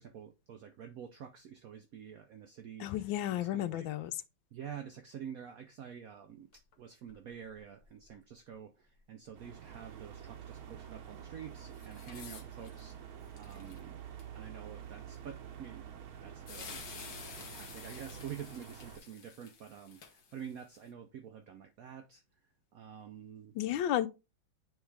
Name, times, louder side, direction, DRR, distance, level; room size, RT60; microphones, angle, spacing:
voice 1, 0.0-3.9 4.5-14.0 14.3-15.9 16.2-22.2 22.7-23.5, right 8 dB, 75° right, 0.8 m, -48 dB
voice 2, 2.8-4.2 23.6-24.1, left 12 dB, 80° left, 1.3 m, -32 dB
sound 1, 6.5-6.7 7.1-7.2 7.5-8.1 11.7-12.9 13.4-13.8 14.3-14.4 16.2-16.3 16.5-20.8, left 6 dB, 55° left, 1.4 m, -50 dB
sound 2, 9.3-19.0, right 8 dB, 60° right, 1.1 m, -48 dB
9.4 x 3.2 x 3.3 m
omnidirectional pair, 2.1 m